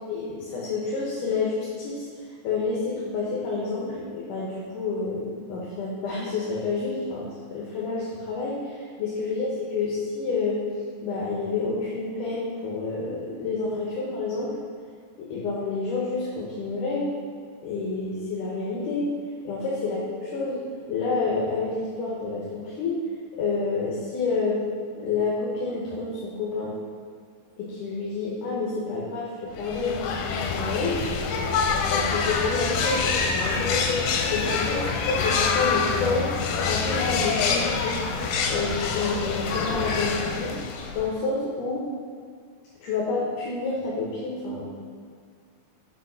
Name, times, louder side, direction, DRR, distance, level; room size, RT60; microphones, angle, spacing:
voice 1, 0.1-2.1 2.4-10.6 11.0-14.5 15.2-17.1 17.6-19.1 19.4-20.6 20.9-23.0 23.4-24.6 24.9-26.8 27.6-31.0 31.8-34.0 34.3-34.8 35.1-36.3 36.6-38.0 38.4-40.6 40.9-41.8 42.8-44.7, left 4 dB, 75° left, -5 dB, 2.6 m, -29 dB
sound 1, 29.6-41.2, left 5 dB, 90° left, 2.4 m, -26 dB
7.0 x 4.8 x 5.8 m, 2.1 s
omnidirectional pair, 3.8 m